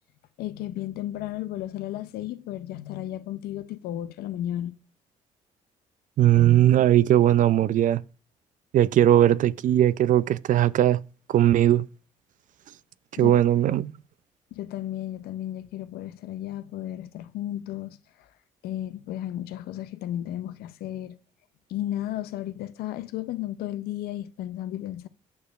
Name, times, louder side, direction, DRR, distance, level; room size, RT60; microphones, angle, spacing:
voice 1, 0.4-4.7 13.2-13.8 14.5-18.0 18.6-21.2 21.7-25.1, left 13 dB, 75° left, 0.6 m, -34 dB
voice 2, 6.2-8.0 8.7-11.0 11.3-11.8 13.2-13.9, right 12 dB, 55° right, 0.4 m, -19 dB
9.5 x 6.5 x 2.4 m
hypercardioid pair, 50°, 16 cm